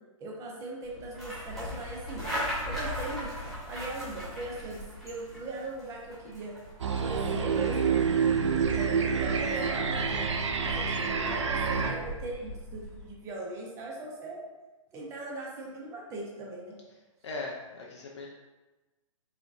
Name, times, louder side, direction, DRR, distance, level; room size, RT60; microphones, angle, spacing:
voice 1, 0.2-2.2 2.6-3.3 3.7-6.5 7.0-7.8 8.6-10.3 10.6-14.4 14.9-16.7, right 2 dB, 15° right, -2 dB, 0.7 m, -39 dB
sound 1, 0.8-13.1, equal, ahead, 1.2 m, -39 dB
sound 2, 6.8-11.9, right 6 dB, 60° right, 0.5 m, -28 dB
voice 2, 11.1-11.4 17.2-18.3, left 3 dB, 55° left, -2 dB, 0.6 m, -39 dB
4.9 x 2.8 x 2.5 m, 1.1 s
figure-of-eight pair, 120°, 17 cm